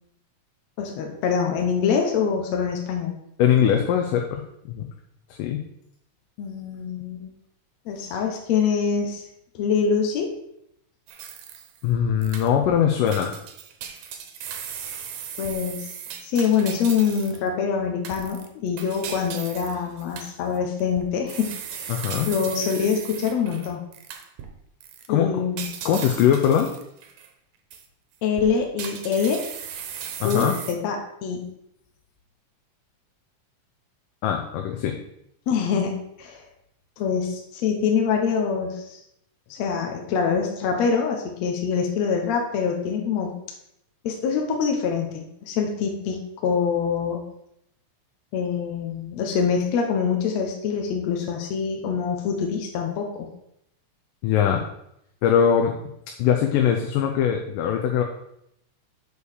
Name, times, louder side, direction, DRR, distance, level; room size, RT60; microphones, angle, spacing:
voice 1, 0.8-3.1 6.4-7.3 7.9-9.2 9.6-10.3 15.4-15.9 16.2-22.0 22.3-23.8 25.1-25.7 28.2-29.4 30.2-31.5 35.5-36.4 37.0-39.0 39.5-43.4 44.0-47.2 48.3-53.3, left 6 dB, 65° left, 2 dB, 1.9 m, -25 dB
voice 2, 3.4-4.9 5.3-5.6 11.8-13.4 21.9-22.3 25.1-25.4 25.9-26.8 30.2-30.6 34.2-35.0 54.2-54.7 55.2-55.8 56.1-58.0, left 8 dB, 90° left, 3 dB, 2.3 m, -21 dB
sound 1, 11.1-11.9 12.2-12.8 13.1-17.5 18.0-24.5 24.8-25.1 25.6-27.3 27.7-27.8 28.3-30.7, right 8 dB, 80° right, 2.5 m, -37 dB
6.5 x 5.5 x 6.3 m, 0.78 s
omnidirectional pair, 3.7 m